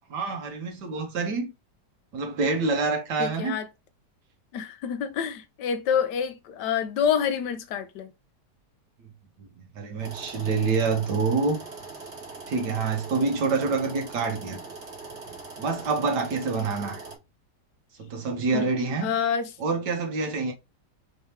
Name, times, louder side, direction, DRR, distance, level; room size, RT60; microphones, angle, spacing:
voice 1, 0.1-1.5 2.1-3.6 9.4-9.5 9.7-11.6 12.5-14.6 15.6-17.0 18.0-19.1 19.6-20.5, right 4 dB, 75° right, 1.6 m, -26 dB
voice 2, 3.2-3.7 4.5-8.1 18.5-18.7 19.0-19.5, left 7 dB, 80° left, 1.3 m, -27 dB
sound 1, 10.0-17.2, right 3 dB, 45° right, 1.6 m, -41 dB
4.6 x 2.8 x 3.2 m
omnidirectional pair, 1.8 m